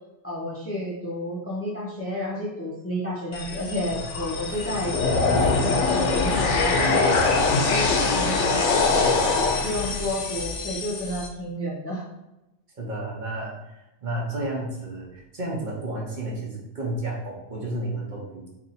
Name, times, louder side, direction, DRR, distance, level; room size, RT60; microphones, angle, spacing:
voice 1, 0.2-4.9 5.3-7.1 7.6-8.8 9.6-12.0, left 1 dB, 20° left, -4 dB, 0.5 m, -30 dB
sound 1, 3.3-11.3, left 3 dB, 90° left, 0.9 m, -23 dB
voice 2, 12.8-18.5, right 1 dB, 45° right, -3 dB, 0.9 m, -32 dB
2.9 x 2.6 x 4.0 m, 0.94 s
omnidirectional pair, 1.2 m